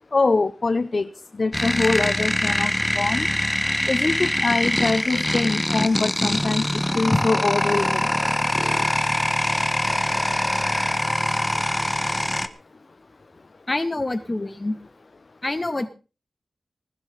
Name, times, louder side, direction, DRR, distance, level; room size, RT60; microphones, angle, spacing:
voice 1, 0.1-1.1 1.4-3.3 3.9-8.1, left 3 dB, 55° left, 13 dB, 0.7 m, -23 dB
sound 1, 1.5-12.5, left 1 dB, 15° left, 1.5 m, -23 dB
voice 2, 13.7-14.8 15.4-15.9, left 2 dB, 35° left, 8 dB, 2.4 m, -25 dB
20.0 x 12.0 x 4.1 m, 0.34 s
cardioid pair, 45°, 0 cm